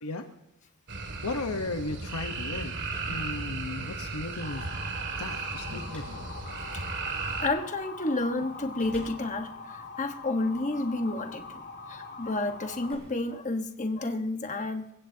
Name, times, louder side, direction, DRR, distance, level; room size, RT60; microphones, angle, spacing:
sound 1, 0.9-7.5, right 4 dB, 55° right, 2.2 m, -35 dB
voice 1, 1.2-2.8 3.1-4.7 5.2-6.3, left 2 dB, 85° left, 5 dB, 1.1 m, -35 dB
sound 2, 2.4-7.8 8.4-10.9 11.7-11.8 12.5-14.2, equal, 5° left, 6.8 m, -53 dB
Motor vehicle (road) / Siren, 4.4-12.9, left 3 dB, 50° left, 2.3 m, -43 dB
voice 2, 7.4-11.6 11.9-14.9, left 2 dB, 35° left, 6 dB, 1.3 m, -31 dB
26.5 x 15.5 x 2.8 m, 0.86 s
head